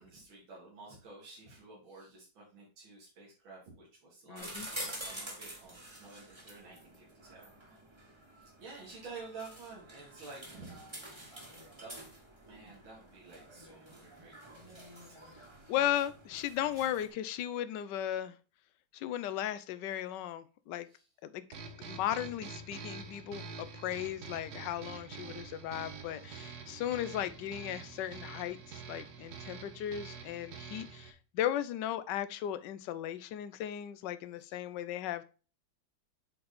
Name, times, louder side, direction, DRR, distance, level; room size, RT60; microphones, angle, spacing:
voice 1, 0.0-4.7 5.0-7.8 8.4-10.9 11.8-12.0 12.5-14.7 15.6-15.7 20.9-21.0 29.2-29.3 34.4-34.6, right 4 dB, 75° right, -5 dB, 2.9 m, -51 dB
voice 2, 4.3-4.7 15.7-18.4 18.9-20.9 21.2-21.5 21.8-35.2, left 11 dB, 70° left, 14 dB, 1.1 m, -36 dB
sound 1, 4.4-17.1, right 1 dB, 15° right, 1.3 m, -48 dB
sound 2, 21.5-31.1, right 5 dB, 55° right, 1.4 m, -46 dB
7.5 x 4.1 x 4.2 m, 0.35 s
omnidirectional pair, 2.2 m